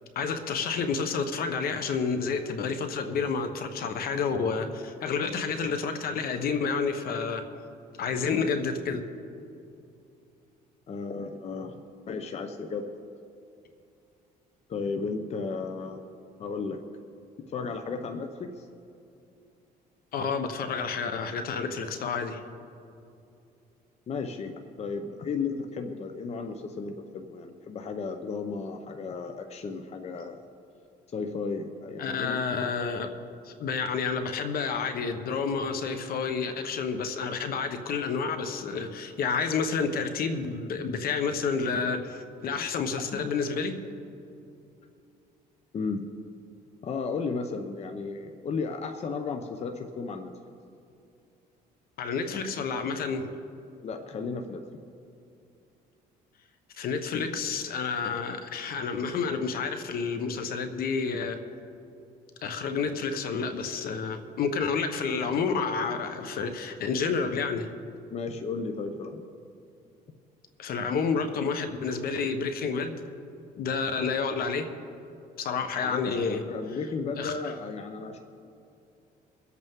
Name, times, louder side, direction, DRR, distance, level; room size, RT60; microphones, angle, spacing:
voice 1, 0.1-7.5 8.0-9.0 20.1-22.4 32.0-33.1 33.4-43.8 52.0-53.3 56.8-61.4 62.4-67.7 70.6-73.0 73.6-74.7 75.4-76.4 77.2-77.3, left 5 dB, 60° left, 8 dB, 1.1 m, -29 dB
voice 2, 10.9-12.9 14.7-16.0 16.4-16.8 17.5-18.7 24.1-30.4 31.1-32.4 42.5-42.7 43.1-43.3 45.7-46.0 46.8-50.3 53.8-54.7 68.1-69.3 75.8-78.2, left 4 dB, 40° left, 6 dB, 0.8 m, -34 dB
24.5 x 8.2 x 3.7 m, 2.6 s
cardioid pair, 110°, 17 cm